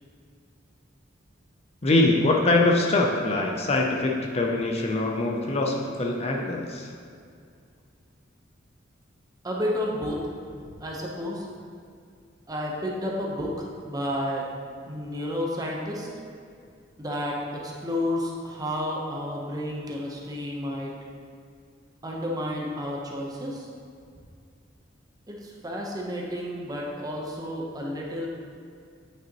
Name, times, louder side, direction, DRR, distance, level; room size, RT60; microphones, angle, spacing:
voice 1, 1.8-6.9, left 2 dB, 35° left, 0 dB, 0.6 m, -23 dB
voice 2, 9.4-10.2 10.5-11.5 12.5-14.5 14.9-16.1 17.0-20.9 22.0-23.7 25.3-28.3, left 1 dB, 20° right, -2 dB, 0.9 m, -31 dB
8.9 x 5.7 x 3.0 m, 2.3 s
head